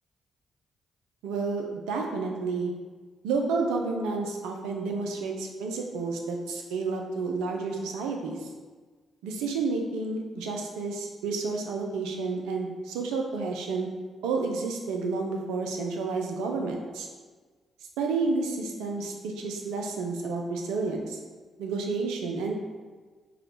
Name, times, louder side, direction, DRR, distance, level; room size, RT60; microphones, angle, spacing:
voice 1, 1.2-2.7 3.2-8.5 9.2-13.9 14.2-17.1 18.0-21.2 21.6-22.5, right 4 dB, 80° right, 2 dB, 0.4 m, -30 dB
4.8 x 2.3 x 3.2 m, 1.4 s
hypercardioid pair, 40°, 0 cm